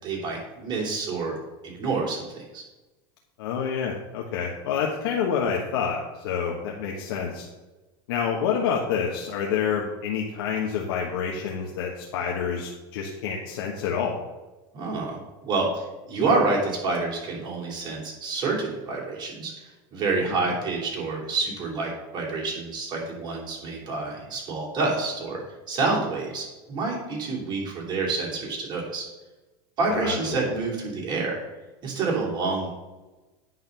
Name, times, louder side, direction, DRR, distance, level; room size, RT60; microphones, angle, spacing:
voice 1, 0.0-1.3 1.6-2.3 2.5-2.6 14.7-19.5 19.9-25.4 25.7-29.1 29.8-31.4 31.8-32.7, right 3 dB, 35° right, -2 dB, 3.3 m, -28 dB
voice 2, 3.4-7.5 8.1-14.2 20.3-20.4 29.9-30.4, left 7 dB, 85° left, -1 dB, 1.2 m, -28 dB
9.3 x 4.0 x 6.7 m, 1.1 s
supercardioid pair, 120°, 12 cm